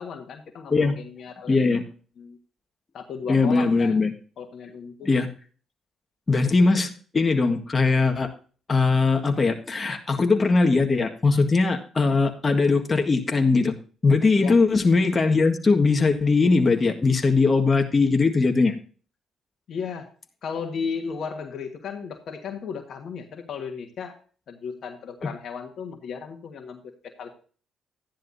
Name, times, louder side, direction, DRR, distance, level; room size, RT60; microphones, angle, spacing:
voice 1, 0.0-1.6 2.2-2.4 2.9-4.0 4.4-5.2 14.4-14.6 19.7-20.1 20.4-24.2 24.5-26.9 27.2-27.3, left 6 dB, 60° left, 6 dB, 1.5 m, -35 dB
voice 2, 1.5-1.8 3.3-4.1 5.0-5.3 6.3-8.3 8.7-13.7 14.0-18.7 25.2-25.3, left 3 dB, 35° left, 4 dB, 1.7 m, -20 dB
13.0 x 10.5 x 2.7 m, 0.41 s
hypercardioid pair, 50°, 0 cm